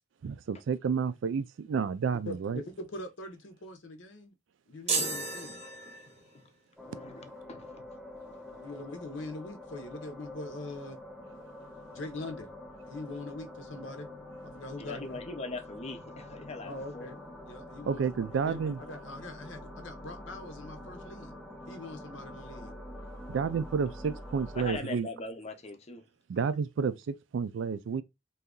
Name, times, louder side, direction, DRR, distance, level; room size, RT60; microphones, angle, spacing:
voice 1, 0.2-2.6 17.9-18.8 23.3-25.1 26.3-28.0, right 6 dB, 75° right, 0.4 m, -30 dB
voice 2, 2.3-4.3 4.7-5.6 8.5-11.0 11.9-12.5 12.9-14.1 14.4-15.2 16.6-17.2 17.4-21.3 21.7-22.7, left 2 dB, 75° left, 0.7 m, -42 dB
sound 1, 4.9-6.4, right 3 dB, 35° right, 0.7 m, -33 dB
voice 3, 6.8-7.8 14.8-17.1 24.5-26.0, left 2 dB, 35° left, 0.5 m, -41 dB
sound 2, 6.8-24.8, left 1 dB, ahead, 0.9 m, -46 dB
2.7 x 2.4 x 3.6 m
head